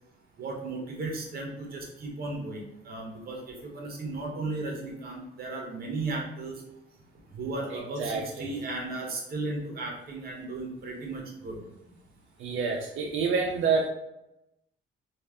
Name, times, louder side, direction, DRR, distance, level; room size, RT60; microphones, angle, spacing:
voice 1, 0.4-6.6 7.3-11.6, right 2 dB, 50° right, 0 dB, 1.1 m, -35 dB
voice 2, 7.7-8.5 12.4-13.9, right 5 dB, 85° right, 0 dB, 0.5 m, -28 dB
3.2 x 2.4 x 3.6 m, 0.87 s
cardioid pair, 90°, 20 cm